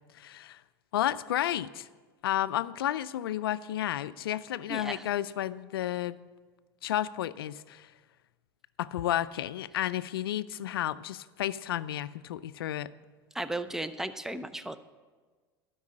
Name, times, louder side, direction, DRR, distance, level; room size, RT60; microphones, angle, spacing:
voice 1, 0.1-0.6 0.9-1.9 2.2-6.2 6.8-7.9 8.8-12.9, left 12 dB, 85° left, 17 dB, 0.4 m, -32 dB
voice 2, 4.7-5.0 13.3-14.8, right 1 dB, 5° right, 12 dB, 0.6 m, -35 dB
12.0 x 5.4 x 8.5 m, 1.4 s
hypercardioid pair, 90°, 12 cm